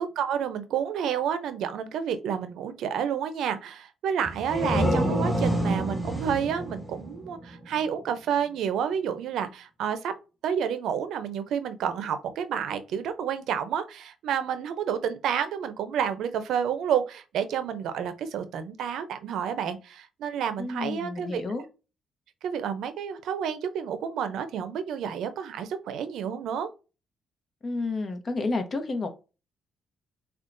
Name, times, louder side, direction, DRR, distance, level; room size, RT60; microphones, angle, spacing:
voice 1, 0.0-10.1 10.4-21.4 22.4-26.7, right 8 dB, 80° right, 0.6 m, -30 dB
sound 1, 4.2-7.8, equal, ahead, 1.8 m, -28 dB
voice 2, 20.6-21.6 27.6-29.1, left 3 dB, 40° left, 1.0 m, -30 dB
6.3 x 2.4 x 2.6 m
cardioid pair, 90°, 0 cm